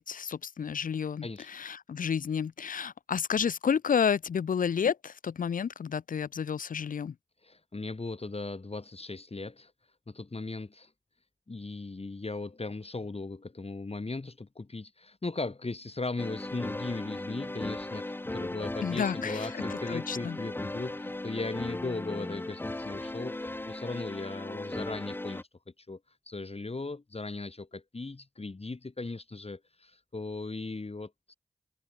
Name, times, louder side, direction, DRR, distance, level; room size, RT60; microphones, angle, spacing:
voice 1, 0.0-7.1 18.8-19.6 19.9-20.4, left 7 dB, 90° left, 0.5 m, -30 dB
voice 2, 7.4-9.7 10.1-10.9 11.5-25.5 25.8-31.3, left 3 dB, 50° left, 2.4 m, -38 dB
sound 1, 16.2-25.4, left 2 dB, 15° left, 0.5 m, -37 dB
cardioid pair, 45°, 14 cm